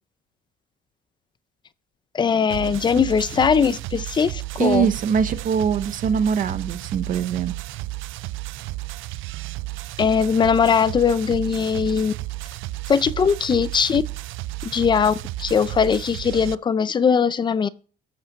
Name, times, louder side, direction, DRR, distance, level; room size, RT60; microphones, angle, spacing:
voice 1, 2.1-4.9 10.0-12.1 12.9-14.0 14.6-17.7, left 6 dB, 20° left, 0.4 m, -20 dB
sound 1, 2.5-16.5, right 18 dB, 70° right, 0.4 m, -33 dB
voice 2, 4.6-7.5, right 7 dB, 40° right, 0.8 m, -22 dB
13.5 x 5.6 x 6.4 m
cardioid pair, 165°, 21 cm